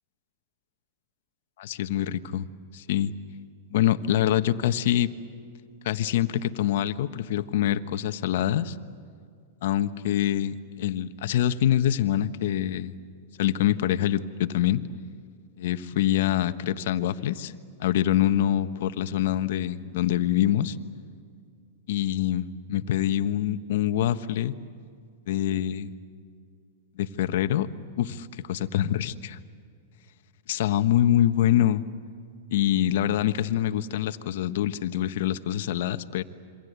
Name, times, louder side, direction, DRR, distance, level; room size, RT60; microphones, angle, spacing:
voice 1, 1.6-2.5 2.7-3.1 3.7-5.1 5.8-8.7 9.6-13.0 13.4-14.8 15.6-17.5 17.8-20.8 21.9-24.6 25.3-25.9 27.0-27.7 28.0-29.4 30.5-31.8 32.5-36.2, left 11 dB, 65° left, 11 dB, 1.3 m, -25 dB
27.5 x 24.5 x 8.2 m, 2.3 s
hypercardioid pair, 115°, 0 cm